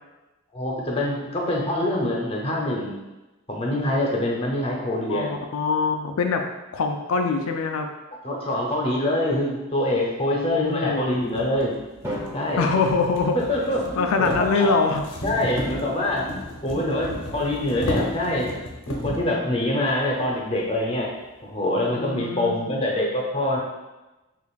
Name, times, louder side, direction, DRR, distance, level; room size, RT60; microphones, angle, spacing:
voice 1, 0.5-3.0 3.5-5.3 8.2-11.7 12.3-12.7 13.3-14.7 15.2-16.3 16.6-18.5 19.0-21.1 21.4-23.6, left 1 dB, 25° left, -2 dB, 0.7 m, -25 dB
voice 2, 5.1-6.4 6.7-7.9 10.3-11.1 12.6-13.4 14.0-15.0 21.9-22.9, left 4 dB, 80° left, 4 dB, 0.4 m, -24 dB
sound 1, 10.5-10.6 11.3-19.3, left 1 dB, 65° left, 0.8 m, -33 dB
Drum, 12.0-14.1, equal, 15° right, 1.1 m, -37 dB
6.7 x 2.4 x 2.4 m, 1.1 s
head